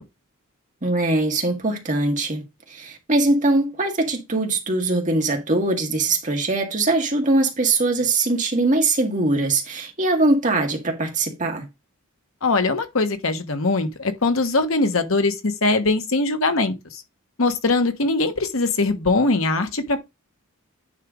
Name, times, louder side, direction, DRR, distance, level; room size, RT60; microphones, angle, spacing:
voice 1, 0.8-2.4 2.7-11.7, right 2 dB, 35° right, 1.9 m, -21 dB
voice 2, 12.4-17.0 17.4-20.0, left 3 dB, 70° left, 1.2 m, -21 dB
9.8 x 3.4 x 4.9 m
head